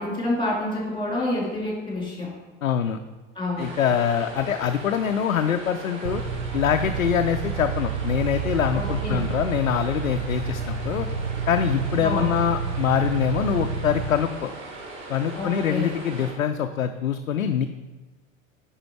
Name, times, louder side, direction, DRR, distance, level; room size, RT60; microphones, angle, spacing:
voice 1, 0.0-2.3 3.3-3.7 8.7-9.3 12.0-12.3 15.4-15.9, left 1 dB, 10° left, -3 dB, 2.8 m, -28 dB
voice 2, 2.6-3.0 3.6-6.2 6.5-11.1 11.5-14.5 15.1-17.7, left 8 dB, 80° left, 7 dB, 0.5 m, -24 dB
sound 1, 3.6-16.3, right 2 dB, 45° right, 2.8 m, -39 dB
sound 2, 6.0-14.1, right 7 dB, 65° right, 0.6 m, -29 dB
10.0 x 4.5 x 4.5 m, 1.3 s
figure-of-eight pair, 80°, 40 cm